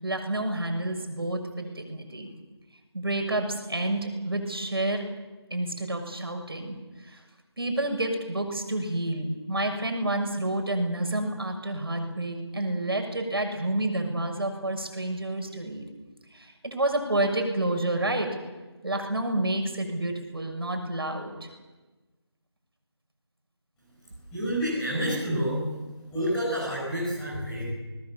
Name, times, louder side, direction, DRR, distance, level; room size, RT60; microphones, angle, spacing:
voice 1, 0.0-2.3 2.9-5.0 5.5-6.8 7.0-7.2 7.6-15.8 16.3-18.3 18.8-21.5, right 1 dB, 55° right, 4 dB, 6.8 m, -29 dB
voice 2, 24.3-25.6 26.1-27.7, equal, 5° left, -10 dB, 5.9 m, -28 dB
27.5 x 20.5 x 7.5 m, 1.2 s
figure-of-eight pair, 175°, 15 cm